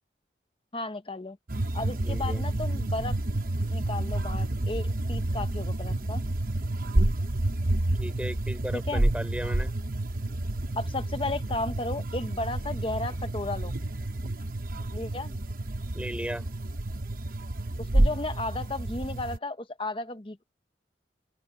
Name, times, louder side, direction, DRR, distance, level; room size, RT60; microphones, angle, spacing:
voice 1, 0.7-1.4 1.7-3.2 3.7-6.2 8.7-9.0 10.8-13.8 14.9-15.3 17.8-20.4, left 2 dB, 30° left, 0.9 m, -34 dB
sound 1, 1.5-19.4, right 1 dB, 50° right, 1.1 m, -29 dB
voice 2, 2.0-2.4 8.0-9.7 15.9-16.5, equal, 5° right, 5.2 m, -35 dB
open air
head